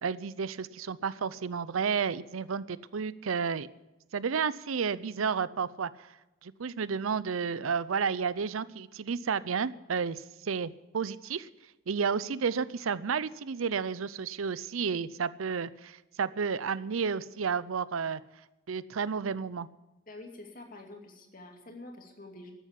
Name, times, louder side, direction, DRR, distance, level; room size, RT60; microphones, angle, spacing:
voice 1, 0.0-3.7 4.1-5.9 6.4-11.5 11.9-18.2 18.7-19.7, right 6 dB, 90° right, 17 dB, 0.6 m, -31 dB
voice 2, 20.1-22.5, left 2 dB, 45° left, 3 dB, 2.4 m, -47 dB
13.0 x 9.3 x 9.8 m, 1.0 s
head